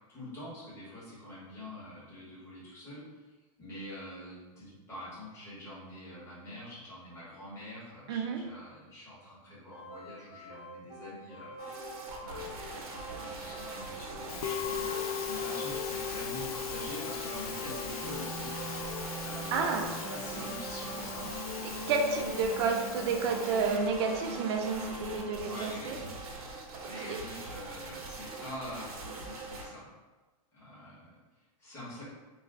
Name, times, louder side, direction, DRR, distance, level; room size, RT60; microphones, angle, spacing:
voice 1, 0.1-11.5 12.2-18.8 19.2-21.3 22.1-22.3 25.4-26.2 26.8-29.9 30.5-32.0, left 1 dB, 15° left, -9 dB, 1.1 m, -46 dB
voice 2, 8.1-8.4 19.5-19.9 20.3-20.4 21.6-26.0 27.0-27.2, right 5 dB, 50° right, 3 dB, 0.4 m, -31 dB
sound 1, 9.7-25.3, left 1 dB, 15° right, 0.7 m, -43 dB
sound 2, 11.6-29.7, right 3 dB, 85° right, 0.7 m, -43 dB
Musical instrument, 14.3-23.8, left 8 dB, 90° left, 0.4 m, -39 dB
2.4 x 2.2 x 3.3 m, 1.2 s
hypercardioid pair, 145°, 18 cm